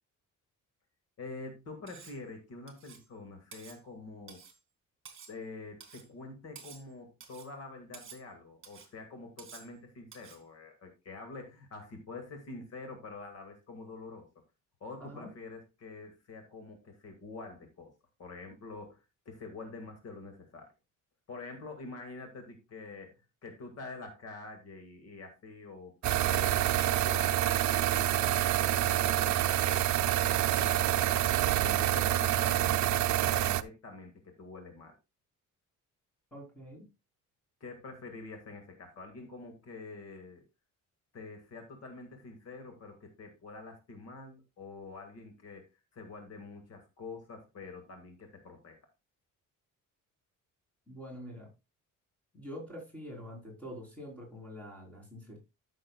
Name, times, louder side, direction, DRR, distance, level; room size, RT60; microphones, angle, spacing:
voice 1, 1.2-4.4 5.3-14.3 14.8-17.9 18.2-20.7 21.3-27.5 27.9-31.3 31.6-34.9 37.6-40.4 41.1-48.8, left 3 dB, 50° left, 5 dB, 2.0 m, -46 dB
Cutlery silverware, 1.9-2.2 2.7-3.1 3.5-3.8 4.3-4.6 5.1-5.4 5.8-6.1 6.6-6.9 7.2-7.5 7.9-8.2 8.6-8.9 9.4-9.7 10.1-10.4, right 7 dB, 40° right, 2.0 m, -51 dB
sound 1, 26.0-33.6, right 13 dB, 60° right, 0.6 m, -27 dB
voice 2, 36.3-36.9 50.9-51.5 52.3-55.4, equal, 5° left, -2 dB, 3.8 m, -45 dB
13.5 x 6.4 x 2.3 m, 0.26 s
cardioid pair, 170°, 32 cm